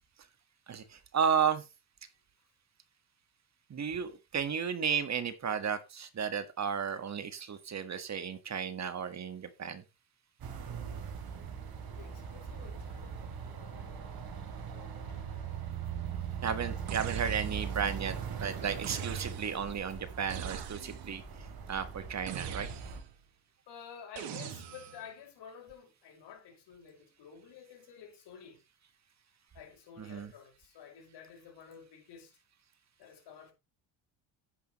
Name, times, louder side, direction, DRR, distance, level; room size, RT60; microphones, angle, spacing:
voice 1, 0.7-1.6 3.7-9.8 16.4-21.2 21.7-22.7 30.0-30.3, right 7 dB, 40° right, 1.6 m, -33 dB
sound 1, 10.4-23.0, right 7 dB, 55° right, 3.4 m, -40 dB
voice 2, 11.9-14.2 14.6-15.4 23.7-28.6 29.5-32.4 33.0-33.5, left 7 dB, 70° left, 5.6 m, -52 dB
sound 2, 16.9-17.8 18.8-19.7 20.3-21.2 22.3-23.2 24.2-25.1, right 9 dB, 75° right, 2.0 m, -42 dB
10.0 x 9.6 x 3.1 m
cardioid pair, 95°, 42 cm